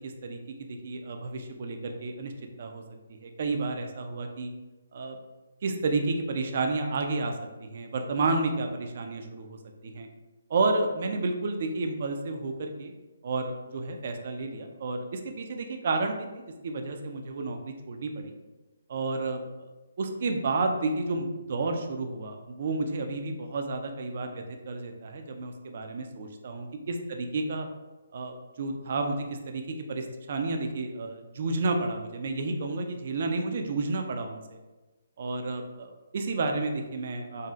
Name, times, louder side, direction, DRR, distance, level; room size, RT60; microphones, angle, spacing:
voice 1, 0.0-2.3 2.6-2.8 3.1-4.5 4.9-5.2 5.6-7.3 7.6-10.1 10.5-12.9 13.2-18.3 18.9-19.4 20.0-27.7 28.1-34.4 35.2-37.5, right 3 dB, 45° right, 4 dB, 0.3 m, -31 dB
3.9 x 2.1 x 2.4 m, 1.1 s
hypercardioid pair, 170°, 0 cm